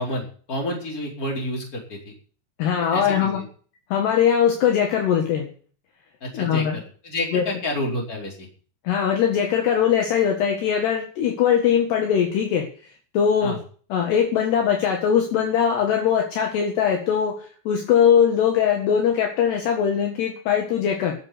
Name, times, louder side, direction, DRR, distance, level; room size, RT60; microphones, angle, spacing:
voice 1, 0.0-2.1 2.9-3.4 6.2-8.5 13.4-13.6, left 1 dB, 20° left, 0 dB, 4.5 m, -29 dB
voice 2, 2.6-3.4 3.9-5.5 6.3-6.8 7.3-7.4 8.9-12.7 13.1-13.6 13.9-17.4 17.7-21.2, left 8 dB, 65° left, 2 dB, 3.5 m, -21 dB
13.5 x 7.4 x 9.7 m, 0.43 s
omnidirectional pair, 5.7 m